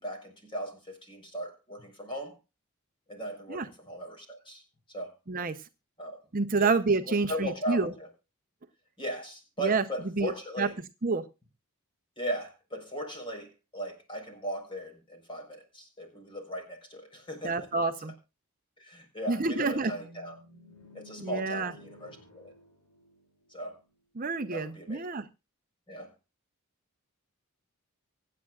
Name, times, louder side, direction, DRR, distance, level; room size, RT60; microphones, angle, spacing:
voice 1, 0.0-2.3 3.1-4.6 4.9-5.1 6.0-6.2 6.6-6.8 7.1-8.1 9.0-10.8 12.2-17.7 18.8-20.4 20.9-22.5 23.5-23.8 24.5-25.1 25.9-26.1, right 1 dB, 20° left, 4 dB, 4.4 m, -38 dB
voice 2, 5.3-5.6 6.3-7.9 9.6-9.8 10.2-10.3 10.6-10.7 11.0-11.2 17.4-18.1 19.3-19.9 21.2-21.7 24.2-25.3, right 3 dB, 40° right, 8 dB, 0.7 m, -28 dB
sound 1, 19.5-23.7, equal, 70° left, 6.9 m, -53 dB
25.0 x 8.6 x 2.4 m, 0.28 s
head